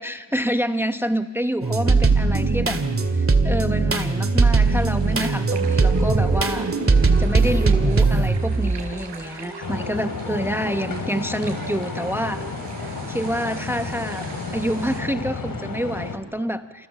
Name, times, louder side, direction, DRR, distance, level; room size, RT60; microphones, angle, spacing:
voice 1, 0.0-2.8 3.2-6.7 7.2-12.4 13.1-14.3 14.5-16.9, equal, 5° right, 9 dB, 1.0 m, -27 dB
sound 1, 1.6-9.0 9.5-10.4 11.0-11.2 11.5-12.5, right 3 dB, 30° right, 2.3 m, -20 dB
sound 2, 4.6-15.0, right 4 dB, 80° right, 5.1 m, -41 dB
sound 3, 9.6-16.2, left 4 dB, 50° left, 3.3 m, -32 dB
29.0 x 27.0 x 7.3 m, 1.4 s
cardioid pair, 80°, 43 cm